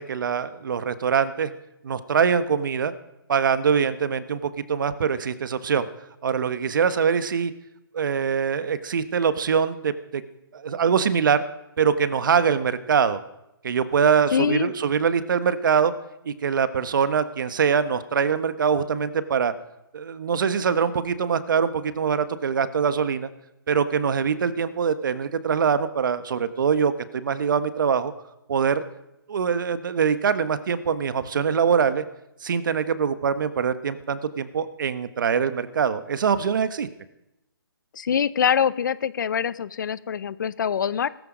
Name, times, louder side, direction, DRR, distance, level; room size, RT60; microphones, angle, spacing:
voice 1, 0.0-1.5 1.8-2.9 3.3-5.9 6.2-7.5 7.9-10.2 10.5-11.4 11.8-13.2 13.6-15.9 16.2-19.5 19.9-23.3 23.7-28.1 28.5-28.8 29.3-32.0 32.4-36.9, right 6 dB, 55° right, 11 dB, 1.3 m, -23 dB
voice 2, 14.3-14.7 37.9-41.1, left 8 dB, 50° left, 17 dB, 0.7 m, -24 dB
20.0 x 13.5 x 5.2 m, 0.88 s
hypercardioid pair, 155°, 13 cm